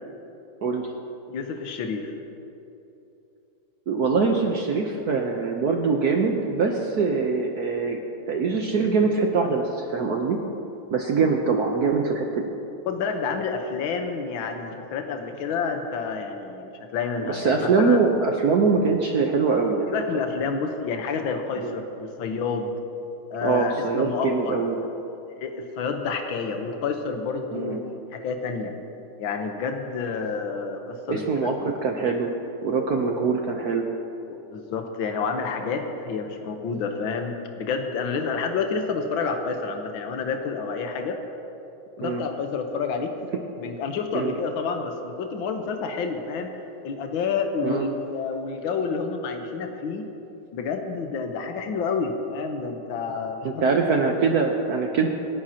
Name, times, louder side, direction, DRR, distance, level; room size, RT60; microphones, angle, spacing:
voice 1, 0.6-0.9 3.9-8.0 8.3-10.4 10.9-12.5 17.2-19.9 21.6-21.7 23.4-24.8 27.5-27.8 31.1-32.3 32.6-33.9 42.0-42.2 44.1-44.3 47.6-47.9 53.4-55.1, right 4 dB, 60° right, 2 dB, 1.2 m, -23 dB
voice 2, 1.3-2.1 12.9-18.0 19.9-22.7 23.3-24.6 25.4-27.8 28.1-28.7 29.2-31.7 34.5-41.2 42.0-43.1 43.6-46.5 46.8-50.0 50.5-53.7, left 5 dB, 70° left, 4 dB, 1.8 m, -29 dB
26.0 x 11.0 x 2.9 m, 2.9 s
omnidirectional pair, 2.3 m